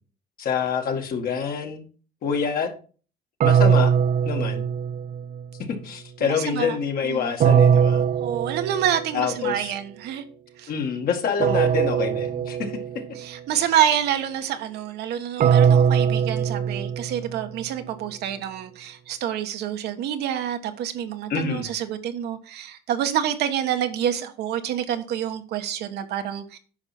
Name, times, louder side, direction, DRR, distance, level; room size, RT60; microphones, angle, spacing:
voice 1, 0.4-1.8 2.2-2.7 3.4-3.9 4.3-4.7 5.8-8.0 9.1-9.7 10.7-12.7 21.3-21.7, left 6 dB, 60° left, 2.0 m, -26 dB
sound 1, 3.4-5.5 7.4-9.2 11.4-13.2 15.4-17.6, right 7 dB, 55° right, 0.5 m, -21 dB
voice 2, 6.2-6.8 7.0-7.3 8.2-10.2 10.6-10.7 13.1-26.6, right 10 dB, 80° right, 1.3 m, -27 dB
9.7 x 5.7 x 4.3 m
cardioid pair, 110°, 17 cm